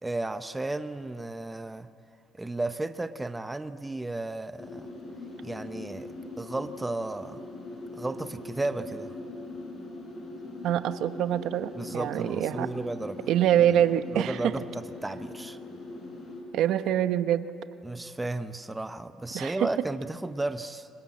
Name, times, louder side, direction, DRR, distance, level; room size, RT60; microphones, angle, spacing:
voice 1, 0.0-1.9 2.3-4.9 5.4-6.1 6.4-7.4 7.9-9.1 11.7-13.3 14.1-15.6 17.8-20.9, right 2 dB, 10° right, 10 dB, 0.8 m, -34 dB
sound 1, 4.6-16.4, left 2 dB, 40° left, 6.7 m, -41 dB
voice 2, 10.6-12.7 13.3-14.4 16.5-17.5 19.3-19.5, right 11 dB, 70° right, 11 dB, 0.9 m, -25 dB
28.0 x 23.5 x 8.5 m, 2.6 s
cardioid pair, 130°, 0 cm